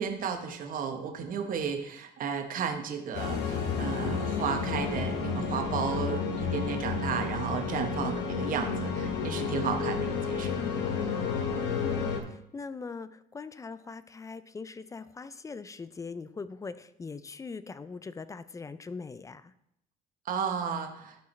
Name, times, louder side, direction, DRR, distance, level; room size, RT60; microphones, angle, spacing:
voice 1, 0.0-10.5 20.3-21.2, right 6 dB, 55° right, 5 dB, 1.0 m, -33 dB
sound 1, 3.1-12.2, left 5 dB, 85° left, 1.1 m, -31 dB
voice 2, 11.5-19.5, left 4 dB, 20° left, 14 dB, 0.4 m, -41 dB
11.5 x 4.7 x 3.1 m, 0.77 s
cardioid pair, 110°, 17 cm